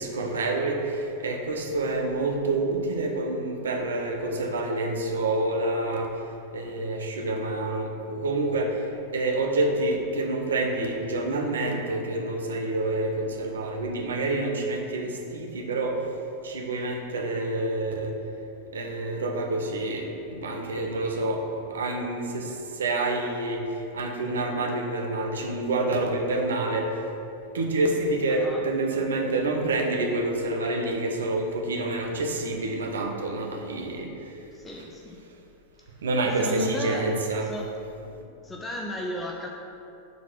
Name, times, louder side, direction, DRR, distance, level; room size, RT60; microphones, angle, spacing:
voice 1, 0.0-6.1 6.5-8.8 9.1-16.0 16.4-18.1 18.7-26.9 27.5-34.1 36.0-37.5, right 2 dB, 65° right, 2 dB, 0.9 m, -27 dB
voice 2, 28.3-28.6 34.5-35.2 36.4-37.0 37.4-37.7 38.4-39.5, equal, 15° left, -1 dB, 0.6 m, -34 dB
7.1 x 4.1 x 6.0 m, 2.8 s
figure-of-eight pair, 90°, 0 cm